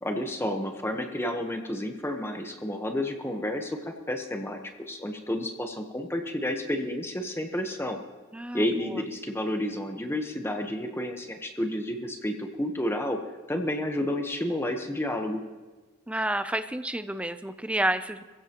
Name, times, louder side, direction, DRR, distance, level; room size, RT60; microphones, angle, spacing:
voice 1, 0.0-8.0 8.5-13.2 13.5-15.4, left 1 dB, 10° left, 4 dB, 1.1 m, -31 dB
voice 2, 8.3-8.6 8.9-9.0 16.1-18.2, right 1 dB, 5° right, 10 dB, 0.5 m, -29 dB
23.5 x 15.5 x 3.0 m, 1.3 s
head